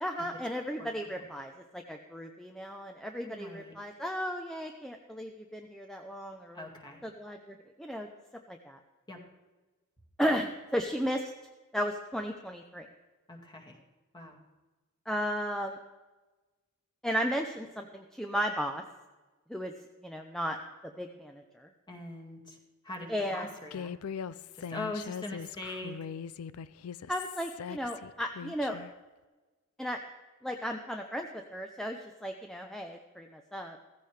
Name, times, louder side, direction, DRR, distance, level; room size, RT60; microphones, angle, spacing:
voice 1, 0.0-6.6 7.0-8.1 8.5-8.8 10.2-11.3 11.7-12.9 15.1-15.8 17.0-18.8 19.5-19.7 20.0-20.6 20.8-21.7 23.1-23.5 27.1-28.8 29.8-30.0 30.4-33.8, equal, ahead, 3 dB, 0.7 m, -35 dB
voice 2, 3.2-3.7 6.5-7.0 9.1-9.2 13.3-13.8 14.1-14.4 21.9-22.6 22.8-23.9 24.6-26.0, left 2 dB, 20° left, 1 dB, 2.0 m, -41 dB
Human voice, 23.7-28.9, left 7 dB, 80° left, 0.4 m, -41 dB
15.5 x 15.0 x 3.3 m, 1.2 s
head